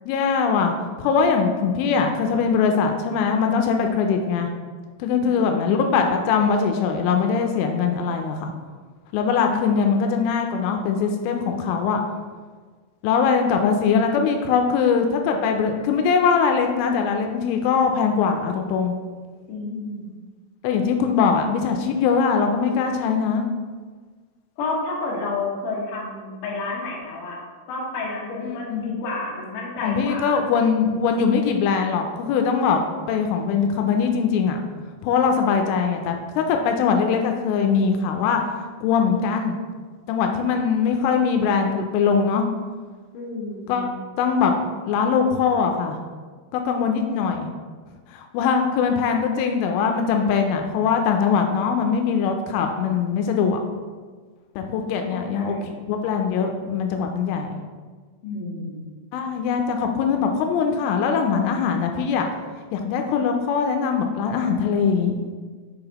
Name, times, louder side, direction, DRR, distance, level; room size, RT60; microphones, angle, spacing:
voice 1, 0.1-4.5 5.0-8.5 9.1-12.0 13.0-18.9 20.6-23.5 28.4-29.0 29.8-34.6 35.0-38.4 38.8-39.6 40.1-42.5 43.7-43.9 44.2-46.0 46.5-47.5 48.1-53.6 54.6-57.6 59.1-62.3 62.7-65.3, left 6 dB, 85° left, 4 dB, 3.0 m, -22 dB
voice 2, 5.1-6.0 19.5-20.0 24.6-27.4 27.7-30.4 43.1-43.9 55.1-55.8 58.2-58.9, left 3 dB, 70° left, -4 dB, 2.0 m, -31 dB
7.0 x 5.8 x 2.9 m, 1.5 s
omnidirectional pair, 5.7 m